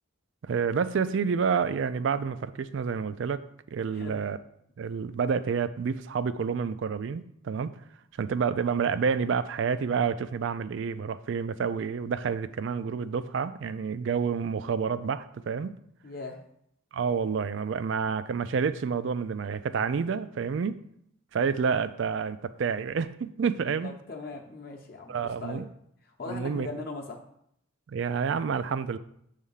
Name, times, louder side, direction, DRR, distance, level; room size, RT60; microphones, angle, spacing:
voice 1, 0.4-3.4 3.7-4.4 4.8-7.7 8.2-15.8 16.9-20.8 21.3-23.9 25.1-25.6 26.3-26.7 27.9-29.0, right 6 dB, 65° right, 14 dB, 0.3 m, -29 dB
voice 2, 16.0-16.4 23.7-25.7 26.0-27.2, left 3 dB, 45° left, 1 dB, 0.8 m, -39 dB
7.3 x 3.4 x 5.5 m, 0.72 s
head